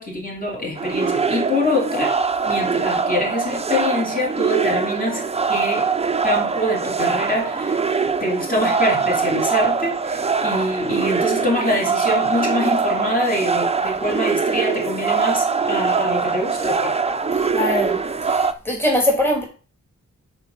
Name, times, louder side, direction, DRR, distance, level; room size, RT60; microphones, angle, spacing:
voice 1, 0.0-2.1 2.4-5.9 6.2-7.8 8.2-17.0, left 1 dB, 30° left, -1 dB, 3.0 m, -24 dB
sound 1, 0.8-18.5, right 5 dB, 20° right, 0.6 m, -22 dB
voice 2, 17.5-18.0 18.2-19.4, left 1 dB, 5° left, -1 dB, 2.7 m, -21 dB
8.2 x 4.6 x 7.0 m, 0.37 s
wide cardioid pair, 140°, 30 cm